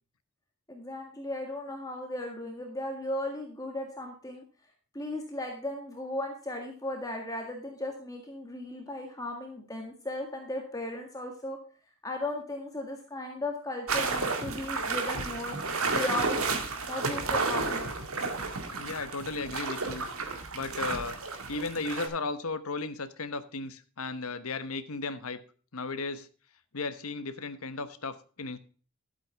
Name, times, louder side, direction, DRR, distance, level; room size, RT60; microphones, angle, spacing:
voice 1, 0.7-4.4 4.9-11.6 12.0-15.6 15.9-17.9, left 1 dB, 15° left, 2 dB, 1.8 m, -36 dB
sound 1, 13.9-22.1, right 4 dB, 80° right, 2.1 m, -32 dB
voice 2, 18.7-20.1 20.5-21.2 21.5-25.4 25.7-26.3 26.7-28.6, left 3 dB, 80° left, 11 dB, 1.1 m, -35 dB
12.5 x 8.2 x 3.4 m, 0.40 s
head